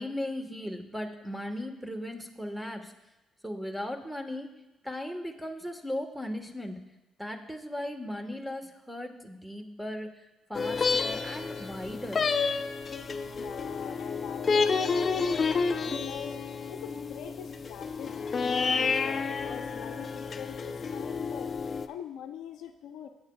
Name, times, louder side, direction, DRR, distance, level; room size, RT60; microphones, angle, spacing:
voice 1, 0.0-2.9 3.4-4.5 4.8-6.8 7.2-12.3, left 1 dB, 5° right, 4 dB, 1.5 m, -37 dB
sound 1, 10.5-21.9, left 5 dB, 40° left, 0.6 m, -30 dB
voice 2, 13.3-21.5 21.9-23.1, left 8 dB, 85° left, 6 dB, 0.7 m, -43 dB
18.5 x 8.7 x 2.4 m, 0.97 s
cardioid pair, 90°, 0 cm